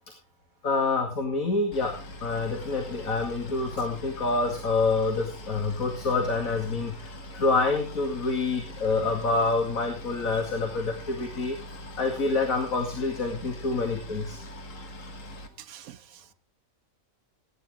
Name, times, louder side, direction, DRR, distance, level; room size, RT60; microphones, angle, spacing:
voice 1, 0.6-11.6 12.0-14.4, left 3 dB, 85° left, 2.7 m, -27 dB
Boat Water vehicle, 1.7-15.5, equal, 70° left, 2.0 m, -42 dB
voice 2, 15.6-16.3, right 10 dB, 90° right, 1.3 m, -47 dB
18.0 x 9.7 x 3.7 m
omnidirectional pair, 1.4 m